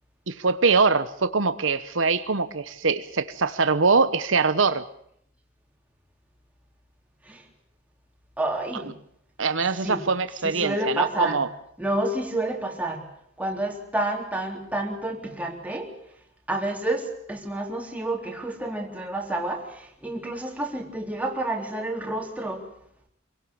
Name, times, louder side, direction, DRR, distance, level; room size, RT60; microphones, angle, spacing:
voice 1, 0.3-4.9 9.4-11.5, right 4 dB, 65° right, 11 dB, 1.1 m, -23 dB
voice 2, 8.4-8.9 9.8-10.0 10.4-11.4 11.8-13.0 13.4-16.0 16.5-22.7, right 1 dB, 5° right, 1 dB, 3.6 m, -29 dB
27.0 x 17.5 x 7.1 m, 0.70 s
head